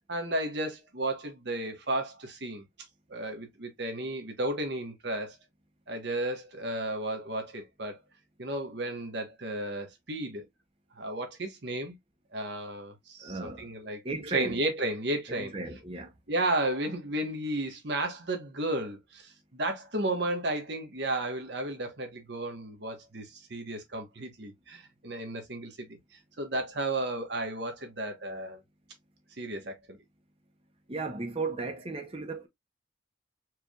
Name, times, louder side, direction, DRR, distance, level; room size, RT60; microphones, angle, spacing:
voice 1, 0.1-2.6 3.1-5.4 5.9-8.0 8.4-10.5 10.9-12.0 12.3-14.0 14.3-15.5 16.3-26.0 26.4-28.6 29.4-30.0, right 1 dB, 55° right, 1.2 m, -33 dB
voice 2, 13.2-13.7 14.0-14.6 15.4-16.1 30.9-32.5, right 3 dB, 30° right, 0.7 m, -35 dB
4.6 x 3.3 x 2.3 m
head